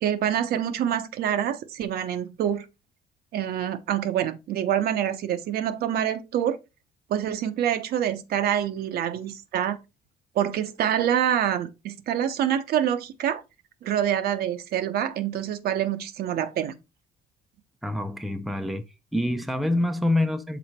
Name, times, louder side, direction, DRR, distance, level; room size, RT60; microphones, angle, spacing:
voice 1, 0.0-2.6 3.3-6.6 7.1-9.8 10.3-13.4 13.8-16.7, right 10 dB, 65° right, 0.9 m, -26 dB
voice 2, 17.8-18.8 19.1-20.6, left 1 dB, ahead, 0.6 m, -26 dB
6.2 x 3.9 x 4.2 m
cardioid pair, 110°, 17 cm